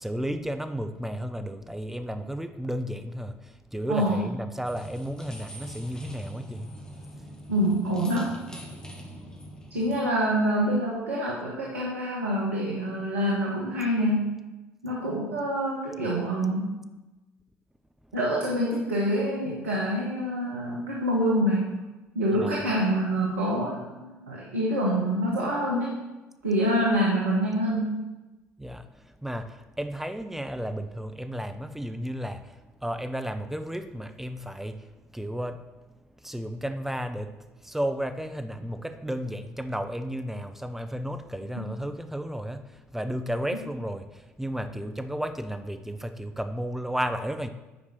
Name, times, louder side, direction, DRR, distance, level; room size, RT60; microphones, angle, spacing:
voice 1, 0.0-6.8 7.2-7.4 22.4-22.5 28.6-47.5, equal, 5° right, 8 dB, 0.7 m, -33 dB
voice 2, 3.9-4.3 7.5-8.4 9.7-14.4 14.8-16.7 18.1-21.8 22.1-26.0 26.4-28.0 41.6-41.7, equal, 80° right, -3 dB, 1.3 m, -26 dB
sound 1, 4.6-10.0, equal, 10° left, 1.8 m, -44 dB
8.3 x 5.0 x 6.0 m, 1.1 s
figure-of-eight pair, 55°, 7 cm